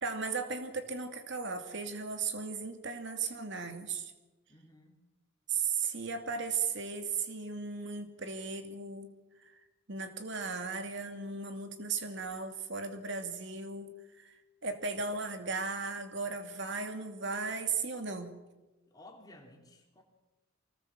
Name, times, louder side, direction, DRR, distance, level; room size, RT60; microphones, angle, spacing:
voice 1, 0.0-4.1 5.5-9.1 9.4-9.5 9.9-14.3 14.6-18.3, right 4 dB, 60° right, 7 dB, 2.5 m, -36 dB
voice 2, 4.5-5.0 18.9-20.0, left 1 dB, 20° left, 1 dB, 3.7 m, -55 dB
24.0 x 19.0 x 7.6 m, 1.1 s
head